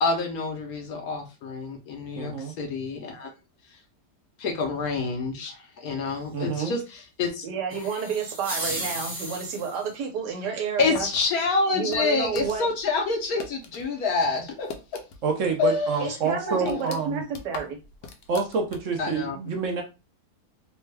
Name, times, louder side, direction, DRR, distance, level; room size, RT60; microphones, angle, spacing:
voice 1, 0.0-3.3 4.4-7.5 7.7-7.8 10.8-14.7 15.6-16.1 16.5-16.6 19.0-19.4, left 4 dB, 70° left, 1.1 m, -27 dB
voice 2, 2.2-2.5 6.3-6.7 15.2-17.2 18.3-19.8, right 5 dB, 60° right, 0.9 m, -27 dB
voice 3, 7.4-11.1 11.7-12.7 16.0-17.8, right 6 dB, 90° right, 1.5 m, -30 dB
sound 1, 7.7-9.9, right 1 dB, 40° right, 1.2 m, -34 dB
sound 2, 10.8-13.9 14.2-15.4 15.7-15.8 16.3-19.1, left 5 dB, 85° left, 1.2 m, -41 dB
3.4 x 2.2 x 3.2 m
omnidirectional pair, 1.7 m